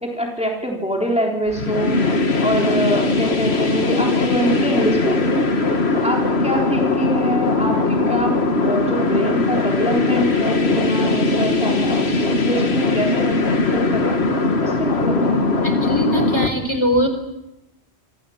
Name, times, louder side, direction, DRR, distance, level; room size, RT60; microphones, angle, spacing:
voice 1, 0.0-2.0 2.4-5.3 6.0-14.2 14.6-15.7, right 1 dB, 5° right, 0 dB, 3.6 m, -24 dB
sound 1, 1.5-16.5, left 3 dB, 65° left, 2.1 m, -20 dB
voice 2, 15.6-17.1, equal, 25° left, 6 dB, 4.2 m, -21 dB
27.5 x 26.0 x 7.2 m, 0.90 s
omnidirectional pair, 1.2 m